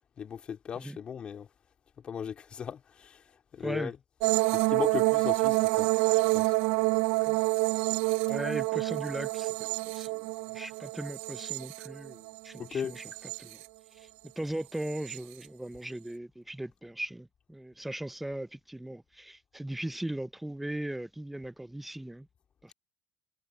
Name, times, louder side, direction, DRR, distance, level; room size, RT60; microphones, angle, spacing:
voice 1, 0.2-1.5 2.0-3.2 3.5-4.0 4.5-5.9 6.3-6.5 12.6-13.0, left 7 dB, 40° left, 2.4 m, -37 dB
voice 2, 3.6-3.9 7.3-7.4 8.3-9.7 9.9-10.3 10.5-13.6 13.9-22.3 22.6-22.7, right 1 dB, 5° right, 0.6 m, -38 dB
sound 1, 4.2-12.4 12.8-13.6 14.9-15.2, right 24 dB, 85° right, 0.4 m, -28 dB
cardioid pair, 105°, 3 cm